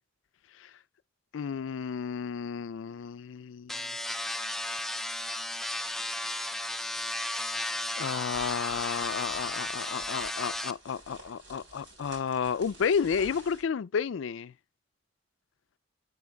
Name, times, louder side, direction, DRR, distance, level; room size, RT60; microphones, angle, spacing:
voice 1, 1.3-4.0 8.0-14.5, left 6 dB, 75° left, 0.4 m, -32 dB
sound 1, 3.7-10.7, left 1 dB, ahead, 0.4 m, -34 dB
sound 2, 8.3-13.6, right 2 dB, 65° right, 3.5 m, -50 dB
11.0 x 8.0 x 2.3 m
head